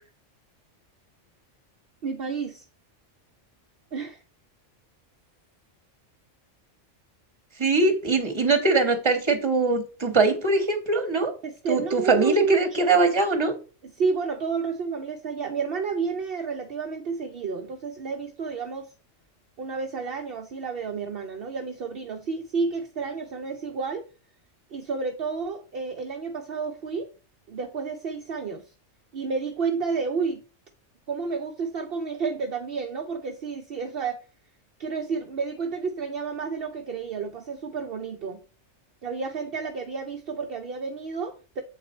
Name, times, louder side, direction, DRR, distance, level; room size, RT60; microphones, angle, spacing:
voice 1, 2.0-2.6 3.9-4.2 11.4-13.0 13.8-18.9 19.6-24.0 24.7-27.1 27.5-28.6 29.1-30.4 31.1-34.2 34.8-38.4 39.0-41.6, right 5 dB, 55° right, 0.8 m, -30 dB
voice 2, 7.6-11.3 11.7-13.5, right 3 dB, 25° right, 1.2 m, -22 dB
7.8 x 4.1 x 4.3 m
omnidirectional pair, 1.3 m